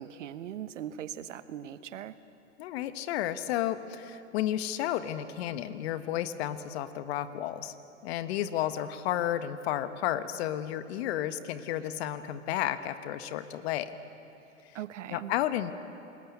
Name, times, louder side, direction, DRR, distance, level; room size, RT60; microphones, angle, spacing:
voice 1, 0.0-2.1 14.7-15.3, right 10 dB, 70° right, 13 dB, 1.2 m, -40 dB
voice 2, 2.6-7.7 8.0-13.9 15.1-15.7, left 12 dB, 55° left, 11 dB, 1.5 m, -32 dB
28.0 x 20.5 x 8.6 m, 2.7 s
hypercardioid pair, 110°, 39 cm